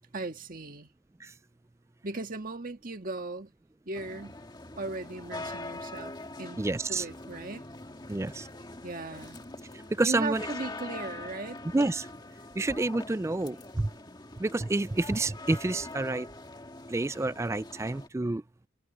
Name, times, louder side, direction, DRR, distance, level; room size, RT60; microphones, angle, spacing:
voice 1, 0.1-0.9 2.0-3.5 3.9-4.4 4.8-6.6 6.9-7.7 8.8-9.4 10.0-11.6, right 2 dB, 45° right, 1.8 m, -37 dB
sound 1, 3.9-18.1, left 2 dB, 20° left, 2.0 m, -43 dB
voice 2, 6.6-7.0 8.1-8.5 9.9-10.5 11.7-12.1 12.6-13.9 14.4-16.3 16.9-18.4, right 2 dB, 15° right, 0.3 m, -29 dB
Wind instrument woodwind instrument, 8.9-12.7, left 2 dB, 60° left, 5.6 m, -61 dB
head